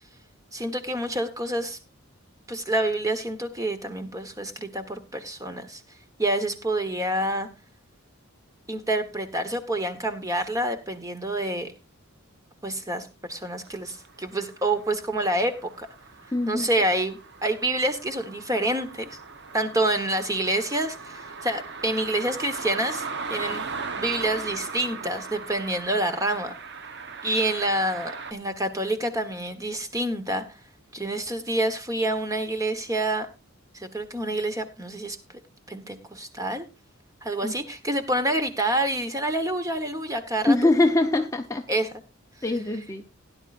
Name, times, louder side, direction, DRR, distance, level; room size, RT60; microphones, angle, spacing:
voice 1, 0.5-1.8 2.5-5.8 6.2-7.5 8.7-11.7 12.6-15.9 16.5-19.2 19.5-23.7 24.0-26.5 27.2-30.6 30.9-33.3 33.7-35.2 35.7-36.7 37.2-40.7 41.7-41.9, right 1 dB, 15° right, 8 dB, 1.3 m, -27 dB
sound 1, 13.7-28.3, right 4 dB, 55° right, 1.1 m, -38 dB
voice 2, 16.3-16.7 37.4-37.5 40.4-41.7 42.4-43.0, left 2 dB, 15° left, 5 dB, 0.7 m, -23 dB
17.5 x 10.5 x 2.5 m, 0.28 s
head